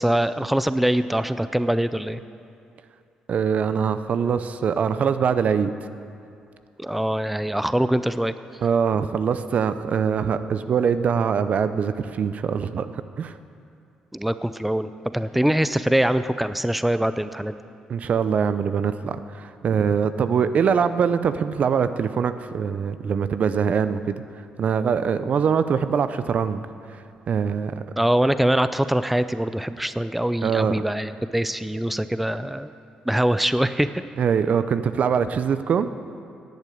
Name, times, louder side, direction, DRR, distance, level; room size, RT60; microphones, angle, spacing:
voice 1, 0.0-2.2 6.8-8.3 14.1-17.6 28.0-32.7 33.1-34.0, right 1 dB, 5° right, 12 dB, 0.5 m, -23 dB
voice 2, 3.3-5.7 8.6-13.3 17.9-24.1 24.6-26.6 27.3-27.7 30.4-30.8 34.2-35.9, right 6 dB, 60° right, 12 dB, 0.6 m, -23 dB
10.5 x 8.3 x 8.5 m, 2.5 s
supercardioid pair, 65°, 3 cm